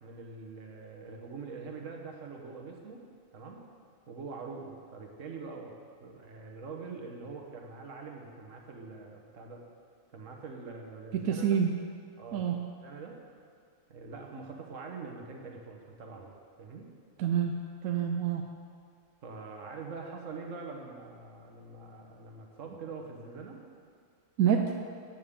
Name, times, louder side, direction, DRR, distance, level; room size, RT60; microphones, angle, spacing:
voice 1, 0.0-3.0 3.3-3.6 4.1-5.7 6.0-9.6 10.1-11.5 12.2-13.2 13.9-16.9 19.2-23.6, right 4 dB, 70° right, 1 dB, 1.5 m, -44 dB
voice 2, 11.1-11.8 12.3-12.6 17.2-17.6 17.8-18.4 24.4-24.7, right 8 dB, 90° right, 3 dB, 1.0 m, -27 dB
13.5 x 9.2 x 3.7 m, 2.2 s
omnidirectional pair, 1.4 m